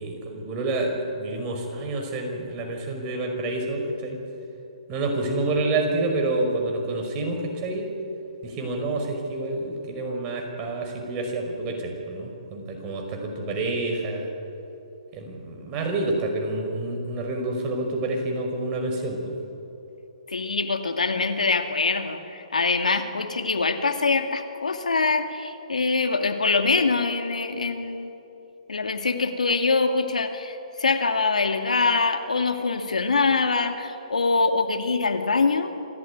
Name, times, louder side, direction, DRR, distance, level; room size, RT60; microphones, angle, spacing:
voice 1, 0.0-4.2 4.9-7.9 8.4-14.3 15.1-19.3, right 2 dB, 25° right, 2 dB, 5.5 m, -28 dB
voice 2, 20.3-28.1 28.7-35.7, left 4 dB, 85° left, 6 dB, 2.3 m, -24 dB
27.0 x 15.0 x 9.7 m, 2.9 s
hypercardioid pair, 140°, 4 cm